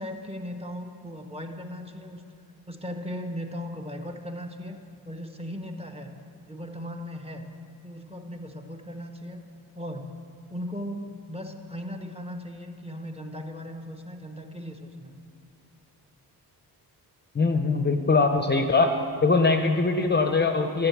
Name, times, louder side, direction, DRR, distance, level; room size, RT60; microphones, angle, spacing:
voice 1, 0.0-2.2 2.7-4.8 5.0-6.1 6.5-7.5 7.8-9.4 9.7-10.1 10.5-15.1, equal, 15° right, 3 dB, 0.9 m, -37 dB
voice 2, 17.3-18.9 19.2-20.9, left 4 dB, 25° left, 6 dB, 0.6 m, -22 dB
13.5 x 6.6 x 8.4 m, 2.4 s
wide cardioid pair, 140°, 38 cm